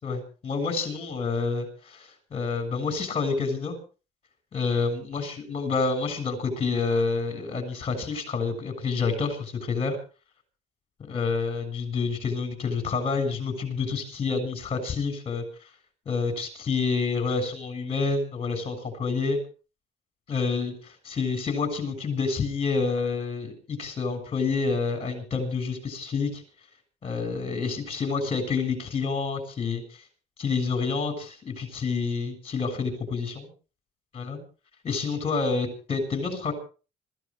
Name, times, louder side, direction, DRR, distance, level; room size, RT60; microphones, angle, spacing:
voice 1, 0.0-3.8 4.5-10.0 11.0-15.4 16.1-19.4 20.3-26.4 27.0-30.0 30.4-33.5 34.1-34.4 34.8-36.5, left 4 dB, 35° left, 8 dB, 7.0 m, -28 dB
26.5 x 15.5 x 3.5 m, 0.36 s
cardioid pair, 110°, 17 cm